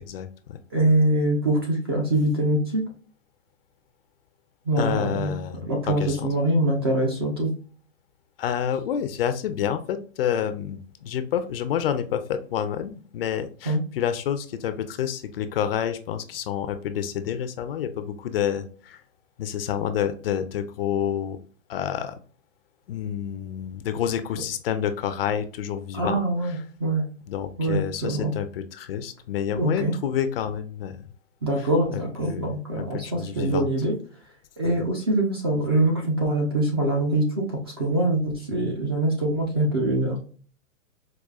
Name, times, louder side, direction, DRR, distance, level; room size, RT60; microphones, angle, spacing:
voice 1, 0.1-0.6 4.8-6.3 8.4-19.0 19.4-21.4 21.7-22.2 22.9-26.6 27.3-31.0 31.6-33.7, left 9 dB, 50° left, 10 dB, 0.4 m, -29 dB
voice 2, 0.7-2.8 4.7-5.4 5.7-7.5 13.7-13.8 25.9-27.1 27.6-28.3 29.5-29.9 31.4-33.9 34.6-40.2, right 1 dB, 20° right, 0 dB, 0.3 m, -24 dB
4.8 x 2.3 x 2.3 m, 0.40 s
hypercardioid pair, 145°, 39 cm